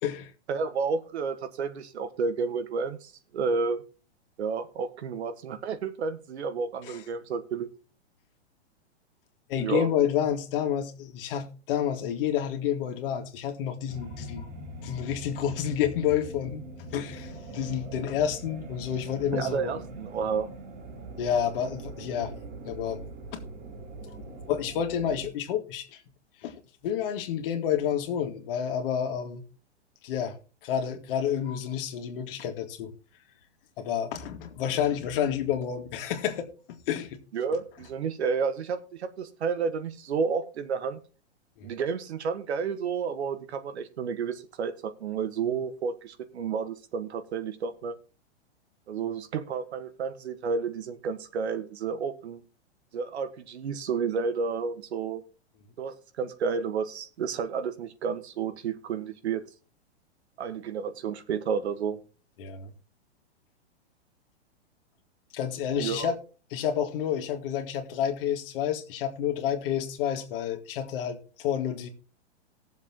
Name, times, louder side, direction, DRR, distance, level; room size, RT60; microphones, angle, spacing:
voice 1, 0.5-3.8 4.4-7.7 9.6-9.9 19.3-20.5 37.3-41.0 41.6-47.9 48.9-52.4 52.9-55.2 55.8-59.4 60.4-62.0 65.8-66.1, right 5 dB, 75° right, 1.5 m, -31 dB
voice 2, 9.5-14.5 14.8-19.7 21.2-22.3 22.7-23.4 24.3-26.0 26.4-29.4 30.0-30.4 30.6-32.9 33.8-37.2 41.6-41.7 62.4-62.7 65.3-66.2 66.5-71.9, left 9 dB, 55° left, 2.2 m, -29 dB
sound 1, 13.9-25.3, right 1 dB, 30° right, 2.2 m, -42 dB
18.5 x 7.2 x 3.0 m
hypercardioid pair, 125°, 33 cm